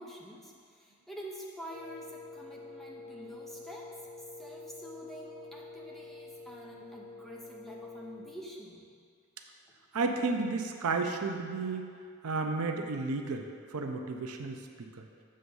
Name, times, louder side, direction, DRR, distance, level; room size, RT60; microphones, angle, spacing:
voice 1, 0.0-4.0 4.4-8.9 9.7-9.8, equal, ahead, -3 dB, 0.7 m, -47 dB
Wind instrument woodwind instrument, 1.7-8.4, left 3 dB, 75° left, 1.8 m, -47 dB
voice 2, 9.9-11.9 12.2-14.6 14.9-15.0, right 3 dB, 85° right, 4 dB, 0.6 m, -32 dB
7.6 x 3.5 x 5.4 m, 2.1 s
head